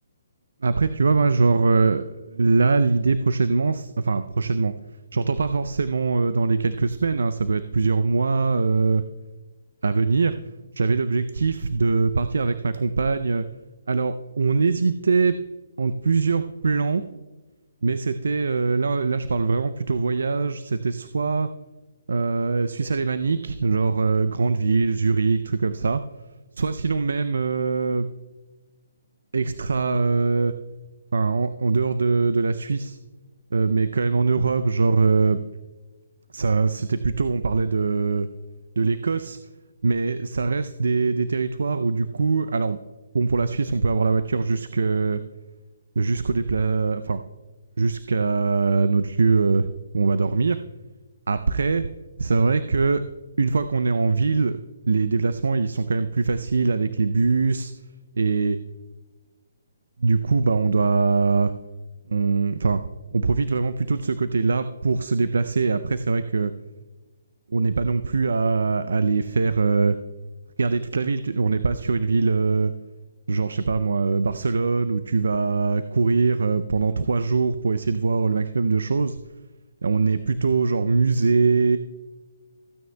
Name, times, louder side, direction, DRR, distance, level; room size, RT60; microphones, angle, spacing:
voice 1, 0.6-4.8 5.1-9.0 9.8-10.3 10.8-13.5 13.9-15.3 15.8-17.1 17.8-21.5 22.1-26.0 26.6-28.1 29.3-30.6 31.1-33.0 33.5-35.4 36.3-38.3 38.8-39.4 39.8-42.8 43.1-45.2 46.0-47.2 47.8-49.7 49.9-50.6 51.3-51.9 52.2-53.0 53.4-54.6 54.9-57.7 58.2-58.6 60.0-61.5 62.1-62.8 63.1-66.5 67.5-70.0 70.6-72.7 73.3-79.2 79.8-81.8, right 4 dB, 80° right, 12 dB, 0.4 m, -22 dB
15.0 x 9.4 x 2.2 m, 1.2 s
hypercardioid pair, 150°, 0 cm